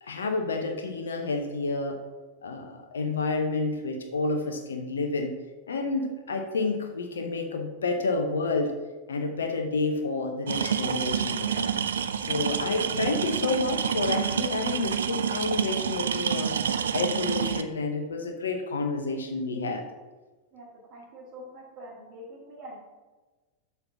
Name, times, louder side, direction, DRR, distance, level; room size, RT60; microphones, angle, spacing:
voice 1, 0.0-2.0 2.4-5.4 5.7-8.7 9.1-11.8 12.2-16.6 16.9-19.9, left 3 dB, 70° left, 4 dB, 0.8 m, -29 dB
sound 1, 10.5-17.6, right 7 dB, 65° right, 0.4 m, -28 dB
voice 2, 20.9-22.8, right 1 dB, 45° right, -7 dB, 1.9 m, -46 dB
6.9 x 5.6 x 5.8 m, 1.3 s
figure-of-eight pair, 90°, 0 cm